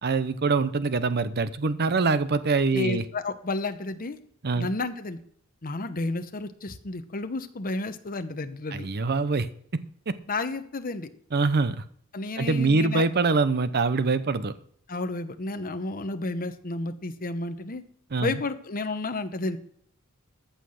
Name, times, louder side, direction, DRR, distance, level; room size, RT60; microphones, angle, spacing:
voice 1, 0.0-3.0 4.4-4.7 8.7-9.5 10.1-10.2 11.3-11.8 12.4-14.5 18.1-18.4, right 4 dB, 45° right, 14 dB, 0.7 m, -24 dB
voice 2, 2.7-4.2 4.5-5.2 5.6-8.9 10.3-11.1 12.1-13.0 14.9-17.8 18.2-19.6, left 2 dB, 40° left, 9 dB, 0.9 m, -31 dB
14.5 x 5.8 x 6.5 m, 0.63 s
head